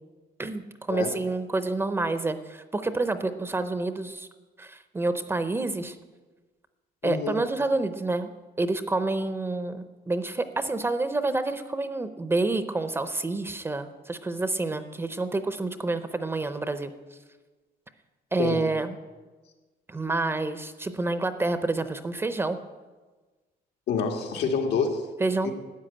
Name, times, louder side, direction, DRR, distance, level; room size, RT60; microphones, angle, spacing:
voice 1, 0.4-4.3 4.6-5.9 7.0-8.3 8.6-16.9 18.3-19.0 19.9-22.6 25.2-25.5, right 2 dB, 15° right, 10 dB, 0.5 m, -28 dB
voice 2, 7.0-7.4 18.4-18.6 23.9-25.1 25.4-25.5, left 5 dB, 90° left, 2 dB, 2.1 m, -27 dB
13.0 x 9.4 x 8.6 m, 1.3 s
cardioid pair, 175°, 17 cm